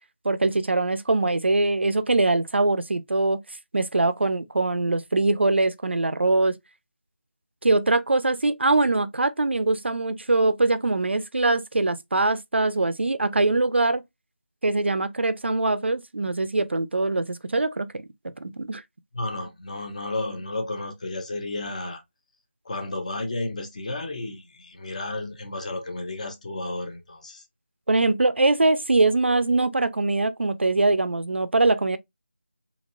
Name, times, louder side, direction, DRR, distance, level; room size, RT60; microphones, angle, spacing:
voice 1, 0.2-3.4 3.7-6.5 7.6-14.0 14.6-17.9 18.2-18.8 27.9-32.0, right 2 dB, 65° right, 0.5 m, -22 dB
voice 2, 19.1-22.0 22.6-27.4, left 2 dB, 35° left, 0.8 m, -32 dB
4.1 x 2.8 x 2.4 m
figure-of-eight pair, 165°, 7 cm